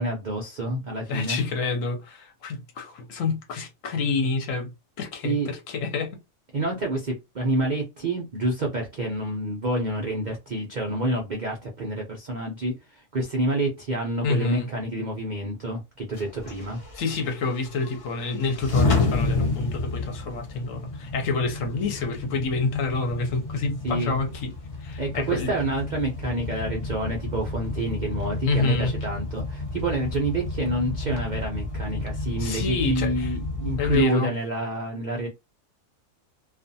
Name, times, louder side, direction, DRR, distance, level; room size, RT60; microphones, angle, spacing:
voice 1, 0.0-1.4 5.2-5.5 6.5-16.8 23.8-24.2 25.0-35.3, right 1 dB, 75° right, 0.4 m, -28 dB
voice 2, 1.1-4.7 5.0-6.1 14.2-14.7 16.9-24.5 24.8-25.5 28.4-28.9 32.4-33.3 33.8-34.3, left 4 dB, 65° left, 1.0 m, -28 dB
sound 1, 16.1-34.0, left 3 dB, 45° left, 0.4 m, -31 dB
2.4 x 2.4 x 2.6 m
omnidirectional pair, 1.6 m